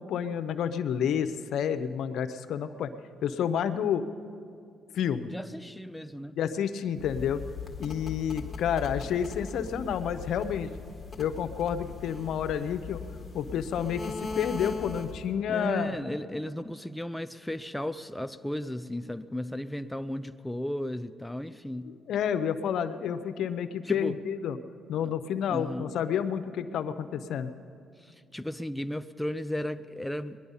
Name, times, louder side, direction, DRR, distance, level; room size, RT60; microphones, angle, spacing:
voice 1, 0.0-2.9 3.2-4.0 4.9-5.3 6.4-7.4 7.8-10.7 11.2-13.0 13.3-16.0 21.8-24.6 24.9-27.5, left 8 dB, 75° left, 10 dB, 0.7 m, -30 dB
voice 2, 5.3-6.4 15.5-21.9 23.9-24.2 25.5-25.9 28.0-30.4, left 1 dB, 5° left, 10 dB, 0.4 m, -35 dB
sound 1, 7.0-15.3, left 4 dB, 30° left, 1.7 m, -39 dB
20.0 x 11.0 x 5.5 m, 2.3 s
cardioid pair, 90°, 0 cm